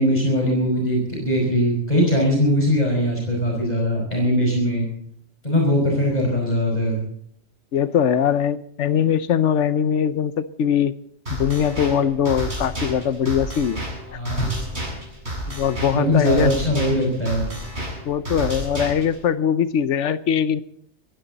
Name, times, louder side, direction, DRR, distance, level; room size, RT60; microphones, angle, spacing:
voice 1, 0.0-4.9 5.4-7.0 14.1-14.5 15.9-17.5, equal, 35° left, -1 dB, 5.5 m, -21 dB
voice 2, 7.7-10.9 11.4-13.8 15.5-16.5 18.1-20.6, left 8 dB, 85° left, 13 dB, 1.1 m, -21 dB
sound 1, 11.3-19.2, right 1 dB, 70° right, 7.9 m, -31 dB
21.0 x 16.0 x 4.1 m, 0.69 s
omnidirectional pair, 1.2 m